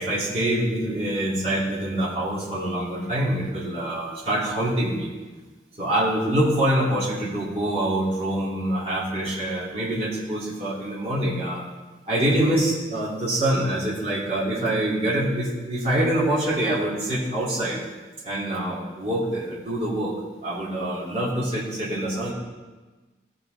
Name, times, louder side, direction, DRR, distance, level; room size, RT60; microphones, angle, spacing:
voice 1, 0.0-5.1 5.8-11.6 12.1-17.8 18.2-20.1 20.4-22.3, right 1 dB, 35° right, -8 dB, 2.4 m, -25 dB
16.0 x 5.5 x 3.9 m, 1.2 s
head